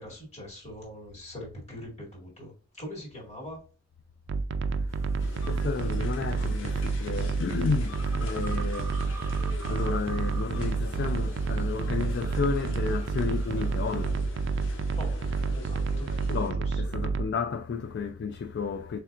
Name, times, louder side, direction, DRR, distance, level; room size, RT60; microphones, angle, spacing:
voice 1, 0.0-3.6 14.9-16.1 16.6-16.8, left 1 dB, 35° left, 2.1 m, -42 dB
sound 1, 4.3-17.3, right 4 dB, 65° right, 0.4 m, -29 dB
voice 2, 4.7-15.0 16.3-19.0, left 5 dB, 60° left, 0.3 m, -33 dB
sound 2, 4.9-14.1, right 3 dB, 15° right, 0.6 m, -47 dB
sound 3, 5.2-16.5, left 3 dB, 85° left, 0.8 m, -46 dB
4.2 x 3.2 x 2.5 m
head